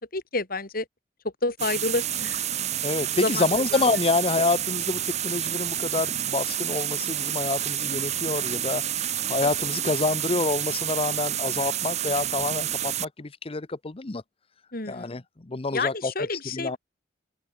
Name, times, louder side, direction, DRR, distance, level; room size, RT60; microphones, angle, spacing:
voice 1, 0.1-0.9 1.4-2.4 3.2-3.8 14.7-15.1 15.7-16.8, left 3 dB, 55° left, 3.8 m, -29 dB
sound 1, 1.6-13.1, right 11 dB, 40° right, 0.7 m, -29 dB
voice 2, 2.8-14.2 14.9-16.1 16.5-16.8, left 3 dB, 30° left, 0.8 m, -27 dB
head